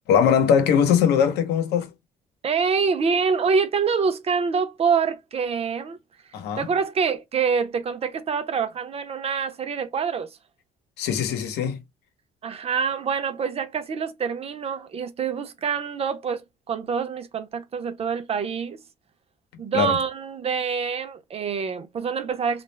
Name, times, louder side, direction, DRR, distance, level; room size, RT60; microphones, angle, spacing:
voice 1, 0.1-1.9 6.3-6.7 11.0-11.8 19.7-20.0, left 7 dB, 80° left, 0.8 m, -21 dB
voice 2, 2.4-6.0 6.6-10.4 12.4-18.8 19.6-22.6, right 6 dB, 35° right, 0.6 m, -26 dB
2.4 x 2.0 x 3.2 m
cardioid pair, 110°, 17 cm